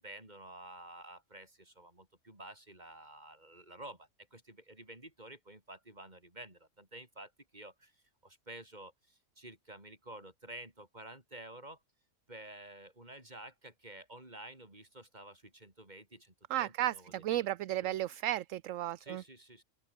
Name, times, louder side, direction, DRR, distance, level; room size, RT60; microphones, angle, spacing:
voice 1, 0.0-7.9 8.2-11.8 12.3-17.5 17.8-18.0 19.0-19.6, right 1 dB, 30° right, 5.5 m, -51 dB
voice 2, 16.5-19.2, right 13 dB, 65° right, 0.9 m, -34 dB
omnidirectional pair, 1.5 m